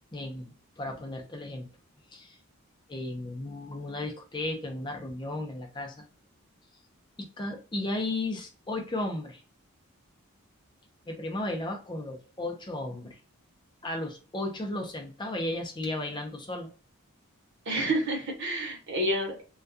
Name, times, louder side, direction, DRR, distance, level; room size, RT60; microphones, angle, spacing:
voice 1, 0.1-1.7 2.1-2.4 2.9-6.0 7.2-9.4 11.1-13.2 13.8-16.7, left 2 dB, 20° left, 2 dB, 0.5 m, -34 dB
voice 2, 17.7-19.4, right 1 dB, 55° right, -1 dB, 0.9 m, -29 dB
2.3 x 2.3 x 2.6 m, 0.37 s
head